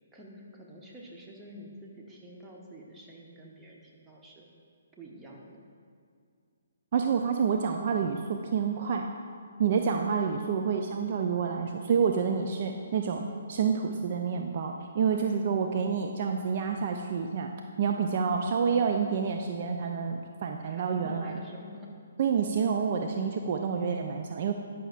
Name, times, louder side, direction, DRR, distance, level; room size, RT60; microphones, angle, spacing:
voice 1, 0.1-4.5 5.0-5.6 15.1-15.4 19.8-19.9 20.6-21.9, equal, 15° right, -2 dB, 0.9 m, -48 dB
voice 2, 6.9-9.1 9.6-13.2 13.5-17.5 17.8-21.4 22.2-24.5, right 6 dB, 45° right, 3 dB, 0.3 m, -28 dB
9.8 x 5.5 x 2.5 m, 2.2 s
figure-of-eight pair, 135°, 0 cm